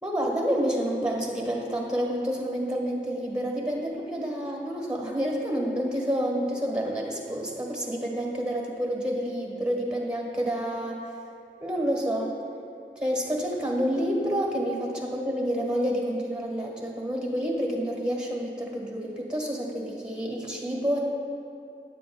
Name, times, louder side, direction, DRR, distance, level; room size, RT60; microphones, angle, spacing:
voice 1, 0.0-11.0 11.6-12.4 12.9-21.0, equal, 5° right, -1 dB, 1.6 m, -29 dB
9.8 x 7.6 x 2.3 m, 2.6 s
cardioid pair, 45°, 21 cm